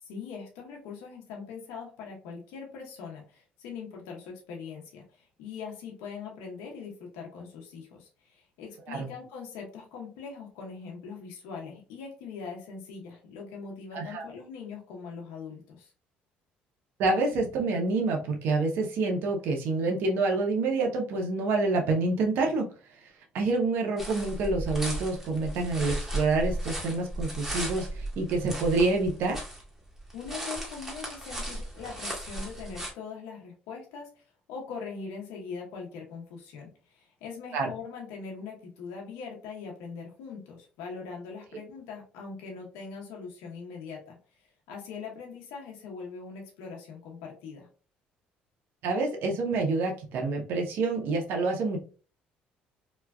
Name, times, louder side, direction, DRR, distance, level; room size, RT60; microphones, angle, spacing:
voice 1, 0.0-15.9 30.1-34.2 34.5-47.7, left 5 dB, 90° left, -1 dB, 0.8 m, -42 dB
voice 2, 13.9-14.3 17.0-22.7 23.3-29.4 37.5-37.7 48.8-51.8, right 3 dB, 70° right, 2 dB, 0.8 m, -27 dB
sound 1, 24.0-29.6 30.0-32.9, right 1 dB, 10° right, 1.1 m, -35 dB
3.0 x 2.3 x 2.2 m, 0.37 s
cardioid pair, 100°, 4 cm